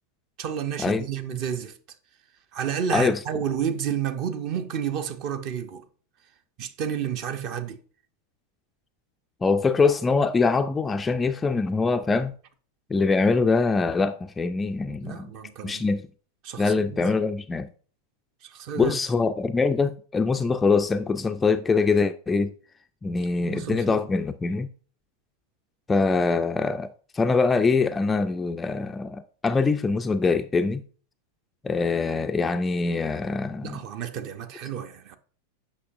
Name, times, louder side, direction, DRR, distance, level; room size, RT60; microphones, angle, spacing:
voice 1, 0.4-1.7 2.5-5.8 6.6-7.8 14.9-15.8 16.4-17.1 18.4-19.0 23.4-24.0 33.6-35.2, right 8 dB, 40° right, 0.7 m, -31 dB
voice 2, 2.9-3.2 9.4-12.3 12.9-15.3 15.6-16.0 16.6-17.7 18.8-22.5 23.0-24.7 25.9-30.8 31.6-33.8, left 4 dB, 15° left, 0.3 m, -23 dB
8.3 x 5.7 x 2.5 m
figure-of-eight pair, 90°, 0 cm